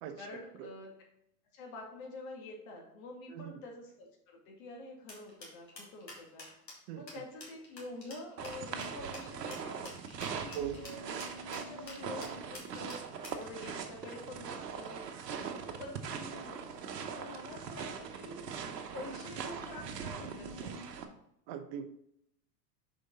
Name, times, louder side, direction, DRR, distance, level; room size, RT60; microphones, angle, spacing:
voice 1, 0.2-0.9 1.5-6.5 6.9-10.0 10.3-11.2 11.7-13.0 13.3-16.8 17.1-18.5 18.9-21.0, left 2 dB, 55° left, 0 dB, 2.3 m, -47 dB
voice 2, 3.3-3.6 6.9-7.0 10.5-10.8 21.5-21.9, right 9 dB, 40° right, 9 dB, 0.6 m, -40 dB
sound 1, 5.1-13.5, left 2 dB, 90° left, 2.3 m, -49 dB
sound 2, 8.4-21.0, right 6 dB, 75° right, 1.0 m, -41 dB
6.4 x 5.2 x 3.8 m, 0.76 s
figure-of-eight pair, 90°, 49 cm